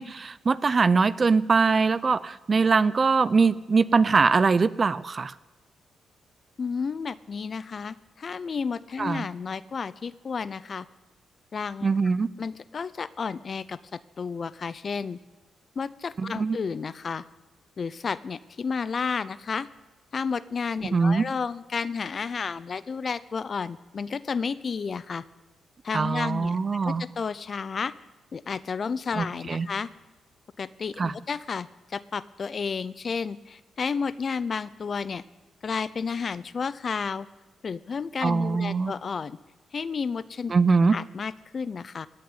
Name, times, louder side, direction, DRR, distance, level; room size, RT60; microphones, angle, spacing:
voice 1, 0.0-5.3 9.0-9.3 11.8-12.3 16.2-16.6 20.8-21.2 25.9-27.0 29.2-29.7 31.0-31.1 38.2-38.9 40.5-41.0, right 4 dB, 40° right, 18 dB, 0.5 m, -22 dB
voice 2, 6.6-10.9 11.5-11.9 12.4-15.2 15.8-17.2 17.8-19.7 20.1-25.2 25.8-27.9 28.3-29.9 30.6-35.2 35.6-37.3 37.6-39.4 39.7-40.5 40.9-42.1, left 5 dB, 45° left, 17 dB, 0.6 m, -32 dB
17.0 x 6.6 x 9.7 m, 1.2 s
cardioid pair, 85°, 0 cm